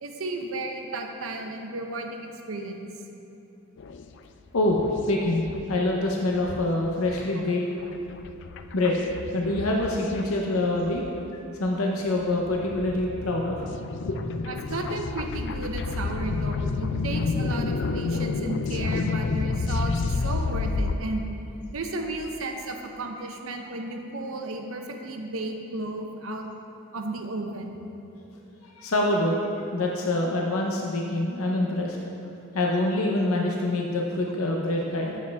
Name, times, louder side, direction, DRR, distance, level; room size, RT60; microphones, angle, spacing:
voice 1, 0.0-2.8 14.5-21.2 21.7-26.4 26.9-27.8, right 2 dB, 75° right, 3 dB, 0.8 m, -33 dB
sound 1, 3.8-4.1 4.6-5.8 6.0-6.1 6.3-11.2 11.7-11.8 12.2-20.9, left 4 dB, 60° left, 0.4 m, -30 dB
voice 2, 4.5-7.6 8.7-9.1 9.3-11.0 11.6-13.6 14.1-14.2 28.6-29.4 29.7-32.0 32.5-35.2, left 1 dB, 90° left, -1 dB, 0.7 m, -25 dB
9.2 x 7.2 x 3.5 m, 2.9 s
head